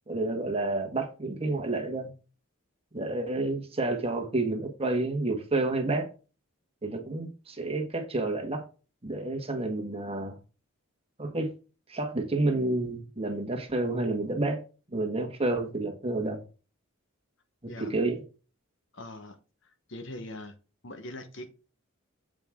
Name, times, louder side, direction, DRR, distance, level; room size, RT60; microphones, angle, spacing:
voice 1, 0.1-2.1 2.9-6.1 6.8-8.6 9.0-10.3 11.2-11.5 11.9-14.6 14.9-16.4 17.8-18.2, right 2 dB, 25° right, 1.5 m, -29 dB
voice 2, 18.9-20.5 20.8-21.5, left 1 dB, 60° left, 1.1 m, -42 dB
7.6 x 5.2 x 3.6 m
head